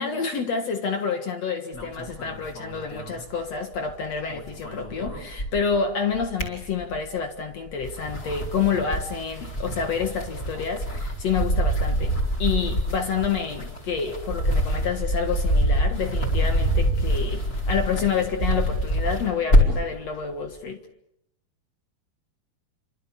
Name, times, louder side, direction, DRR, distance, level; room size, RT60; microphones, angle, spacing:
voice 1, 0.0-20.8, left 6 dB, 55° left, 2.2 m, -28 dB
sound 1, 1.7-3.9 4.2-5.8 6.1-7.2 7.7-19.9, equal, 20° left, 5.0 m, -25 dB
29.0 x 26.0 x 6.9 m
omnidirectional pair, 4.6 m